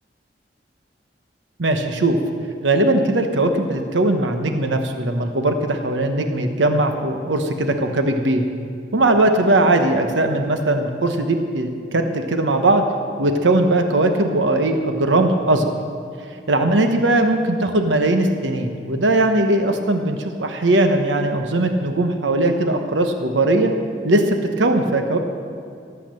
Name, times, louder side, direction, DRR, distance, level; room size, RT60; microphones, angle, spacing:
voice 1, 1.6-2.2 2.6-8.5 8.9-12.8 13.2-15.8 16.5-23.7 24.0-25.2, right 2 dB, 90° right, 5 dB, 1.1 m, -19 dB
17.5 x 8.4 x 7.6 m, 2.4 s
head